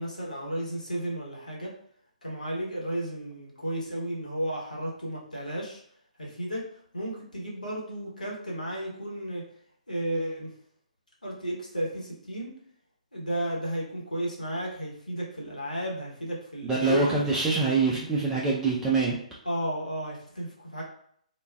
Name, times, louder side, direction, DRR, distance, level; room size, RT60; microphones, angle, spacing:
voice 1, 0.0-1.7 2.2-5.8 6.2-6.6 6.9-9.4 9.9-10.5 11.2-12.5 13.1-17.2 19.4-20.8, right 1 dB, 80° left, -4 dB, 0.9 m, -33 dB
voice 2, 16.6-19.2, right 4 dB, 10° right, -5 dB, 0.3 m, -25 dB
2.3 x 2.2 x 3.3 m, 0.64 s
figure-of-eight pair, 135°, 4 cm